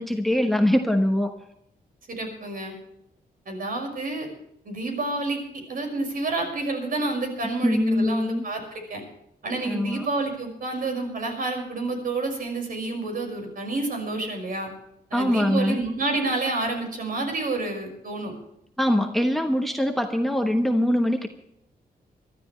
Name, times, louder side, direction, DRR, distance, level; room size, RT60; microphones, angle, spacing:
voice 1, 0.0-1.3 7.6-8.4 9.6-10.1 15.1-15.8 18.8-21.3, left 1 dB, ahead, 5 dB, 1.1 m, -23 dB
voice 2, 2.1-2.7 3.5-4.3 4.6-5.4 5.7-9.0 9.4-14.7 15.1-18.3, right 2 dB, 60° right, 3 dB, 5.8 m, -29 dB
24.5 x 13.0 x 3.3 m, 0.78 s
wide cardioid pair, 130°, 16 cm